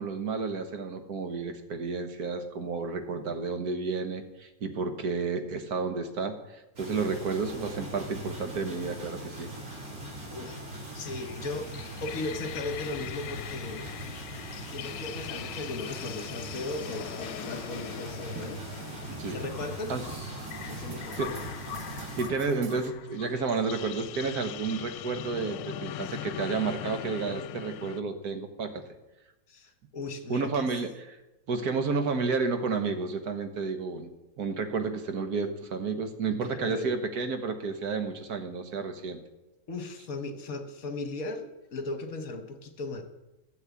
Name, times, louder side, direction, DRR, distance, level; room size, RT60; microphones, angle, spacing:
voice 1, 0.0-9.5 19.2-19.4 19.9-20.0 21.2-21.3 22.2-28.8 30.3-31.2 31.5-34.1 34.4-39.2, right 4 dB, 60° right, 7 dB, 1.7 m, -31 dB
sound 1, 6.8-22.3, right 1 dB, 30° right, 3.7 m, -41 dB
voice 2, 10.9-11.7 12.0-13.9 14.7-18.6 19.3-20.0 20.7-21.5 26.0-26.2 29.5-30.7 36.3-37.0 39.7-43.0, left 2 dB, 55° left, 7 dB, 1.5 m, -37 dB
sound 2, 11.2-28.0, left 12 dB, 80° left, 1.3 m, -41 dB
sound 3, 14.9-22.9, right 6 dB, 80° right, 1.8 m, -47 dB
12.0 x 7.6 x 8.3 m, 1.0 s
omnidirectional pair, 2.0 m